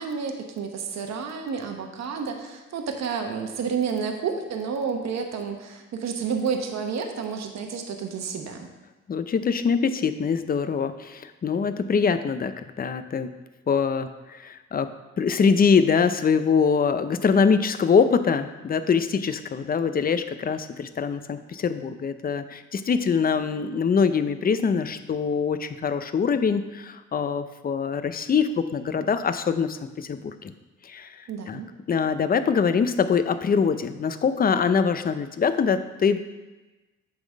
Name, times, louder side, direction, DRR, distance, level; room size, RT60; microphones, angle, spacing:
voice 1, 0.0-8.7 31.3-31.7, right 6 dB, 60° right, 4 dB, 1.1 m, -30 dB
voice 2, 9.1-13.3 13.7-14.9 15.2-30.5 30.8-31.6 31.9-36.2, left 6 dB, 30° left, 10 dB, 0.6 m, -23 dB
8.6 x 4.0 x 6.3 m, 1.1 s
cardioid pair, 90°, 30 cm